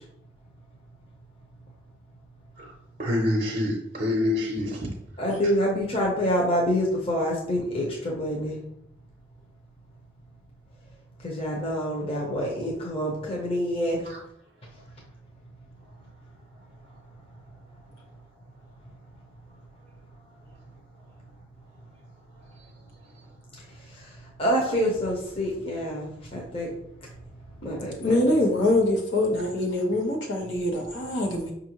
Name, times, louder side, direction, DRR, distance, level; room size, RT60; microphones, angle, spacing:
voice 1, 3.0-4.9 14.1-14.2 27.6-27.7, left 1 dB, 40° right, 0 dB, 0.6 m, -27 dB
voice 2, 5.2-8.6 11.2-14.1 23.8-26.7 27.0-27.1 27.6-28.2, equal, 30° left, -3 dB, 0.7 m, -27 dB
voice 3, 28.0-31.5, left 1 dB, 90° left, 0 dB, 1.1 m, -24 dB
5.5 x 2.6 x 2.9 m, 0.76 s
head